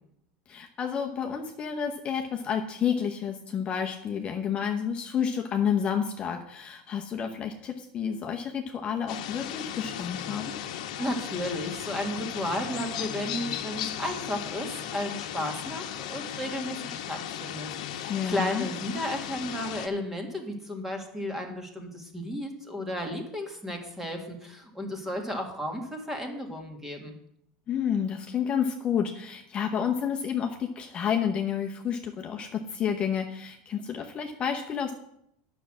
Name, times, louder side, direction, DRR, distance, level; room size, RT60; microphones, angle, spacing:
voice 1, 0.5-10.5 18.1-18.7 27.7-34.9, left 8 dB, 30° left, 2 dB, 0.9 m, -30 dB
sound 1, 9.1-19.9, left 10 dB, 85° left, 1.0 m, -36 dB
voice 2, 11.0-27.2, left 1 dB, 10° right, 3 dB, 1.8 m, -33 dB
9.9 x 6.3 x 7.4 m, 0.74 s
supercardioid pair, 145°, 4 cm